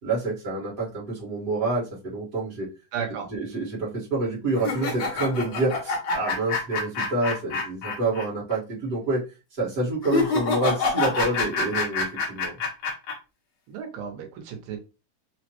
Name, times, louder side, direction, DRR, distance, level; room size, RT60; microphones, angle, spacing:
voice 1, 0.0-2.7 3.3-9.2 9.6-12.5, right 2 dB, 50° right, -8 dB, 0.6 m, -27 dB
voice 2, 2.9-3.3 13.7-14.8, right 7 dB, 90° right, 3 dB, 2.6 m, -33 dB
sound 1, 4.6-8.2 8.5-8.6 10.0-13.1, left 3 dB, 80° left, 1.1 m, -26 dB
5.5 x 2.1 x 3.0 m, 0.30 s
omnidirectional pair, 3.9 m